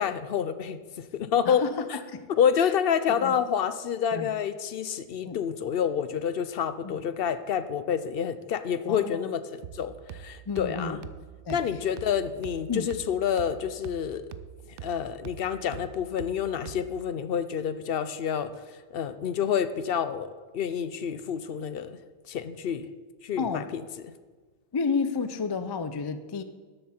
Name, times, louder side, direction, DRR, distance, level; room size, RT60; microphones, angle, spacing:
voice 1, 0.0-1.6 2.4-11.0 11.5-14.2 14.8-18.5 18.9-20.3 20.5-22.0 22.3-22.9 23.2-23.8, left 8 dB, 60° left, 12 dB, 0.8 m, -28 dB
voice 2, 1.5-2.3 2.6-2.7 3.2-3.4 4.1-4.3 5.3-5.4 6.8-6.9 8.9-9.3 10.5-11.0 11.5-11.6 12.7-12.9 23.4-23.7 24.7-26.4, left 5 dB, 40° left, 10 dB, 0.3 m, -31 dB
sound 1, 9.6-17.1, right 10 dB, 60° right, 0.6 m, -45 dB
12.5 x 7.5 x 4.4 m, 1.4 s
omnidirectional pair, 1.2 m